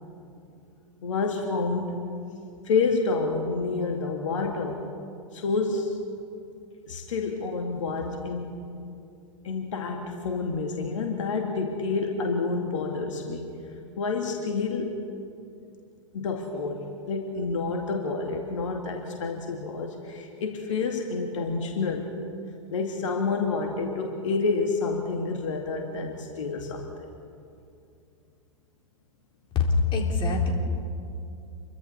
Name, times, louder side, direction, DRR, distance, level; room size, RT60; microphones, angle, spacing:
voice 1, 1.0-2.0 2.6-4.8 5.3-5.9 6.9-8.6 9.4-13.5 14.0-15.0 16.1-16.8 17.1-22.1 22.7-26.8, left 4 dB, 65° left, 2 dB, 2.2 m, -28 dB
voice 2, 29.5-30.5, left 4 dB, 30° left, 1 dB, 3.7 m, -23 dB
28.0 x 23.5 x 4.3 m, 2.5 s
figure-of-eight pair, 100°, 17 cm